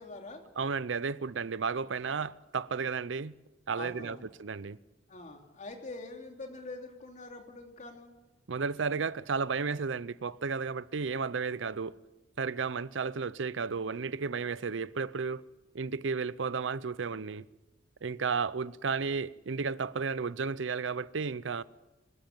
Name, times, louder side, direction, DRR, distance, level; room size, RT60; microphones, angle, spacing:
voice 1, 0.0-0.4 3.7-4.3 5.1-8.1, left 3 dB, 40° left, 3.1 m, -44 dB
voice 2, 0.6-3.3 3.7-4.8 8.5-12.0 12.4-15.4 15.7-17.4 18.0-21.6, right 5 dB, 85° right, 0.6 m, -33 dB
24.0 x 13.0 x 8.9 m
head